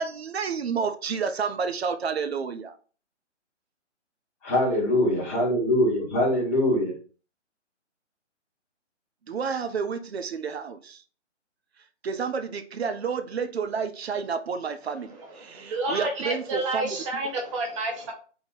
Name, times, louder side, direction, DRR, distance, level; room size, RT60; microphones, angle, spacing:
voice 1, 0.0-2.7 9.3-11.0 12.0-17.0, right 6 dB, 60° right, 0.5 m, -30 dB
voice 2, 4.4-6.9, left 1 dB, 10° left, 0.7 m, -23 dB
voice 3, 15.1-18.1, right 2 dB, 25° right, 0.8 m, -30 dB
3.8 x 2.0 x 3.7 m
figure-of-eight pair, 145°, 36 cm